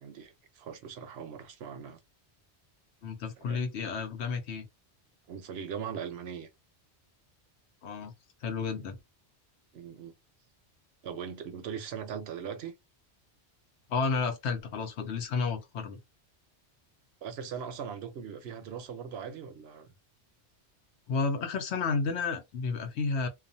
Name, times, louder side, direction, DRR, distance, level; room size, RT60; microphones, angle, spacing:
voice 1, 0.0-2.0 3.4-3.6 5.3-6.5 9.7-10.1 11.0-12.7 17.2-19.9, right 7 dB, 70° right, 0.8 m, -40 dB
voice 2, 3.0-4.7 7.8-8.1 8.4-9.0 13.9-16.0 21.1-23.3, left 4 dB, 75° left, 1.0 m, -31 dB
2.4 x 2.4 x 2.6 m
omnidirectional pair, 1.2 m